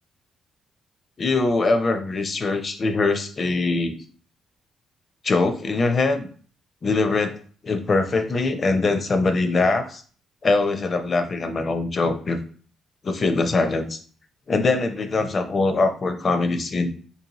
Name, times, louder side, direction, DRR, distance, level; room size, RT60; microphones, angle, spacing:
voice 1, 1.2-4.0 5.2-6.3 6.8-7.4 7.6-10.0 10.4-12.4 13.0-14.0 14.5-16.9, left 3 dB, 40° left, 8 dB, 0.5 m, -22 dB
4.0 x 2.7 x 2.9 m, 0.44 s
cardioid pair, 105°, 0 cm